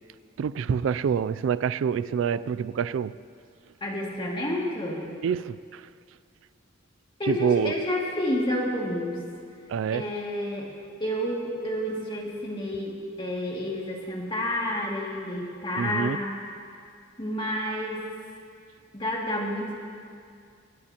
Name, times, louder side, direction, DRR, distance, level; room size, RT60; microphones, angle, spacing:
voice 1, 0.4-3.2 5.2-5.9 7.2-7.7 9.7-10.1 15.8-16.2, right 7 dB, 80° right, 17 dB, 0.3 m, -26 dB
voice 2, 3.8-5.0 7.2-9.2 9.9-10.7 11.0-16.4 17.2-18.0 18.9-19.8, left 1 dB, 25° left, -2 dB, 2.3 m, -29 dB
22.0 x 17.5 x 2.9 m, 2.3 s
head